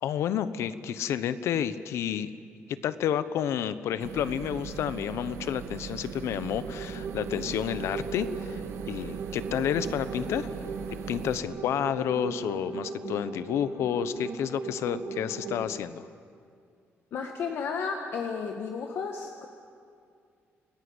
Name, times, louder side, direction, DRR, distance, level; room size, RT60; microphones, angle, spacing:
voice 1, 0.0-2.3 2.7-8.6 8.9-10.7 11.1-16.1, left 9 dB, 80° left, 13 dB, 1.0 m, -30 dB
sound 1, 4.0-11.4, right 7 dB, 90° right, 2.0 m, -39 dB
sound 2, 6.2-15.7, right 4 dB, 50° right, 2.6 m, -38 dB
voice 2, 17.1-19.5, left 5 dB, 60° left, 3 dB, 1.6 m, -33 dB
29.5 x 20.0 x 8.0 m, 2.3 s
cardioid pair, 170°, 5 cm